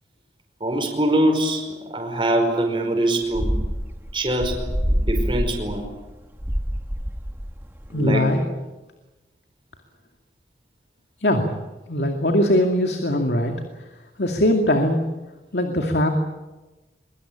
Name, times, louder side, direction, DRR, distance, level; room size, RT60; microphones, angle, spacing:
voice 1, 0.6-3.6 4.1-4.7 4.9-5.9 7.9-8.4, right 1 dB, 30° right, 2 dB, 5.1 m, -23 dB
sound 1, 3.3-8.3, equal, 10° right, 1.4 m, -26 dB
voice 2, 7.9-8.4 11.2-11.5 11.9-13.5 14.2-15.0 15.5-16.1, left 1 dB, 75° left, 3 dB, 2.4 m, -20 dB
24.0 x 23.5 x 8.9 m, 1.1 s
head